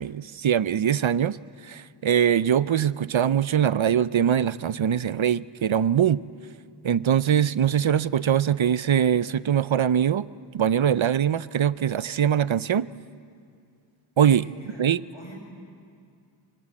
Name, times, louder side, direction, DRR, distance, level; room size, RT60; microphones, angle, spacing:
voice 1, 0.0-1.4 1.6-6.2 6.8-10.3 10.5-12.9 14.2-14.5 14.8-15.0, right 9 dB, 70° right, 18 dB, 0.6 m, -22 dB
voice 2, 14.3-14.8 15.1-15.4, left 1 dB, 65° left, -1 dB, 7.5 m, -44 dB
25.0 x 21.5 x 8.5 m, 2.3 s
wide cardioid pair, 45°, 50 cm